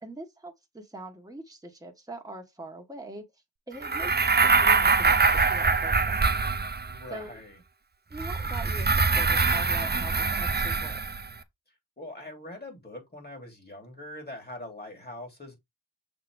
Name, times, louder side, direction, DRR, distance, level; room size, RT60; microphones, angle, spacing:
voice 1, 0.0-3.2 3.7-4.1 4.4-6.4 7.1-7.4 8.1-11.0, right 1 dB, 10° right, 1.6 m, -43 dB
sound 1, 3.8-7.1 8.1-11.3, right 4 dB, 30° right, 0.7 m, -24 dB
voice 2, 6.9-7.6 12.0-15.6, left 1 dB, 30° left, 3.2 m, -42 dB
6.8 x 4.2 x 3.5 m
wide cardioid pair, 95°, 34 cm